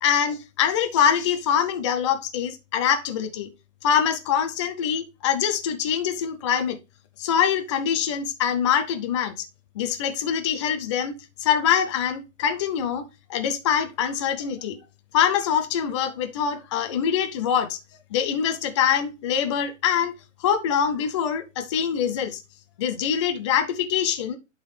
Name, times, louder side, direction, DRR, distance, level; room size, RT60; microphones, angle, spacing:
voice 1, 0.0-3.5 3.8-6.8 7.2-9.5 9.8-13.0 13.3-14.8 15.1-17.8 18.1-20.1 20.4-22.4 22.8-24.4, left 8 dB, 25° left, 0.5 m, -24 dB
11.0 x 3.9 x 3.2 m
hypercardioid pair, 140°, 40 cm